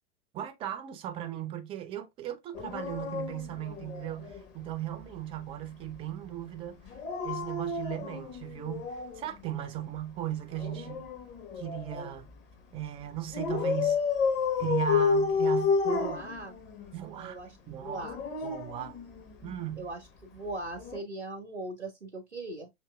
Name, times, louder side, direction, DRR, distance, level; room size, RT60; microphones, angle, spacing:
voice 1, 0.3-6.8 7.2-11.1 11.6-12.3 12.7-14.0 14.6-16.4 16.9-17.4 17.7-18.1 18.4-19.0 19.4-19.9, right 12 dB, 15° right, 0.4 m, -37 dB
Dog, 2.5-4.4 6.9-9.3 10.5-12.2 13.3-16.9 17.9-19.5 20.8-21.0, left 5 dB, 30° left, 1.1 m, -31 dB
voice 2, 15.8-16.6 17.1-18.2 19.8-20.0 20.3-22.7, right 2 dB, 85° right, 0.7 m, -40 dB
5.7 x 2.8 x 2.2 m
figure-of-eight pair, 90°, 34 cm